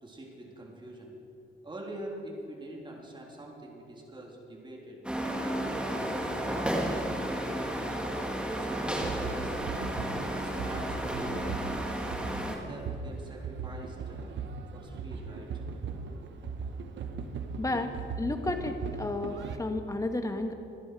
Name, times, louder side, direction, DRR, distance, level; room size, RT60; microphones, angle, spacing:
voice 1, 0.0-1.2 1.6-6.0 6.4-8.0 8.5-9.6 10.2-11.7 12.5-14.4 14.7-15.6, right 1 dB, 25° right, -1 dB, 3.4 m, -45 dB
sound 1, 5.0-12.6, right 1 dB, 5° right, 2.0 m, -32 dB
sound 2, 9.0-19.6, right 5 dB, 65° right, 1.2 m, -38 dB
voice 2, 17.6-17.9 18.2-20.5, left 2 dB, 15° left, 6 dB, 1.5 m, -32 dB
26.0 x 10.5 x 4.9 m, 2.8 s
cardioid pair, 90°, 20 cm